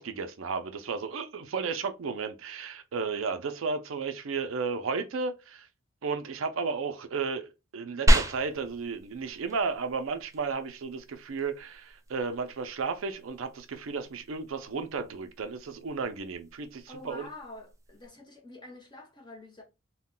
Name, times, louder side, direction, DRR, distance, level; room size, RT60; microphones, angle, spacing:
voice 1, 0.0-5.7 6.0-17.3, right 5 dB, 75° right, 0.5 m, -33 dB
sound 1, 8.1-18.1, equal, 15° right, 0.4 m, -33 dB
voice 2, 16.9-19.6, left 2 dB, 20° left, 0.9 m, -46 dB
2.2 x 2.2 x 3.7 m
head